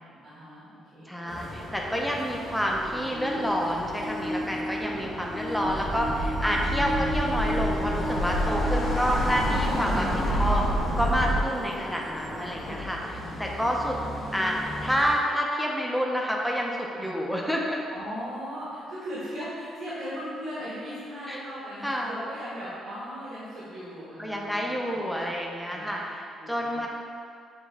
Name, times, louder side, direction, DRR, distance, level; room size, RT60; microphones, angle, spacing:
voice 1, 0.0-1.3 1.7-2.0 8.4-8.7 12.3-12.5 13.1-13.7 17.0-17.2 17.9-25.4 25.7-26.0 26.3-26.9, equal, 80° right, -10 dB, 1.3 m, -39 dB
voice 2, 1.1-10.7 11.0-14.0 14.3-17.8 21.3-21.4 21.8-22.2 24.2-26.2 26.5-26.9, equal, ahead, -2 dB, 0.5 m, -28 dB
sound 1, 1.2-15.1, left 1 dB, 65° left, 1.2 m, -35 dB
sound 2, 2.7-10.4 11.1-11.2 12.2-12.3, left 1 dB, 20° left, 1.0 m, -35 dB
sound 3, 5.6-11.4, right 1 dB, 50° right, 0.6 m, -28 dB
6.2 x 2.3 x 3.4 m, 2.3 s
cardioid pair, 90°, 0 cm